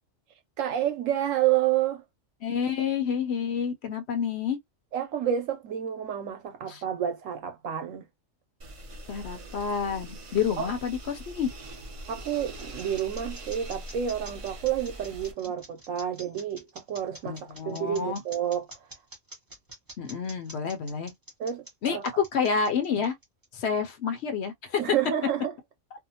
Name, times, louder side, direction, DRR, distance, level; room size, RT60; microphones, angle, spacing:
voice 1, 0.6-2.0 4.9-8.1 10.6-10.7 12.1-18.7 21.4-22.0 24.8-25.5, right 10 dB, 90° right, 1.1 m, -29 dB
voice 2, 2.4-4.6 6.7-6.8 9.1-11.5 17.3-18.2 20.0-21.1 21.8-23.2 23.5-24.8, left 6 dB, 65° left, 0.8 m, -29 dB
sound 1, 8.6-15.3, right 1 dB, 50° right, 0.4 m, -42 dB
sound 2, 12.2-23.6, right 1 dB, 20° right, 0.7 m, -47 dB
2.6 x 2.1 x 2.7 m
omnidirectional pair, 1.3 m